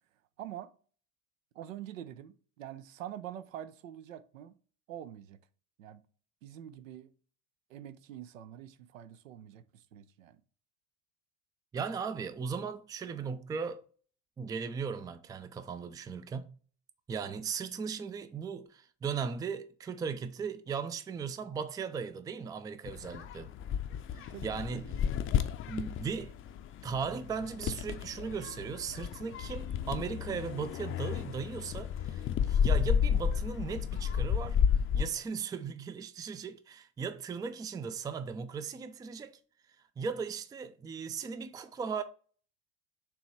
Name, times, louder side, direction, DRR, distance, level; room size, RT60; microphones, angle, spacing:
voice 1, 0.4-0.7 1.5-4.6 4.9-5.4 5.8-6.0 6.4-7.1 7.7-10.4 24.3-25.0, right 11 dB, 70° right, 0.7 m, -45 dB
voice 2, 11.7-13.9 14.4-16.5 17.1-23.5 24.1-24.8 25.7-26.3 26.8-34.6 34.9-39.4 40.0-42.0, right 6 dB, 10° right, 0.4 m, -37 dB
sound 1, 22.9-35.1, left 8 dB, 30° left, 0.6 m, -32 dB
6.9 x 3.0 x 4.6 m
figure-of-eight pair, 75°, 40 cm